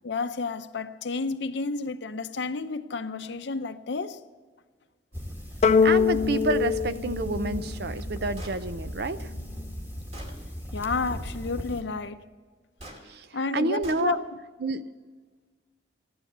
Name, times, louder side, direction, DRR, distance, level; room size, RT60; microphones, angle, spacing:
voice 1, 0.0-4.2 10.7-12.2 13.3-14.2, left 4 dB, 75° left, 0.7 m, -31 dB
sound 1, 5.1-11.8, equal, 10° right, 1.8 m, -37 dB
sound 2, 5.6-8.2, left 6 dB, 40° left, 0.4 m, -23 dB
voice 2, 5.8-9.3 13.1-13.3 13.5-14.2 14.6-14.9, right 3 dB, 65° right, 0.7 m, -29 dB
Gunshot gunfire, 8.3-8.6 9.5-9.6 10.1-10.4 12.8-13.0 13.8-14.1, equal, 40° right, 2.5 m, -43 dB
15.0 x 11.5 x 6.8 m
head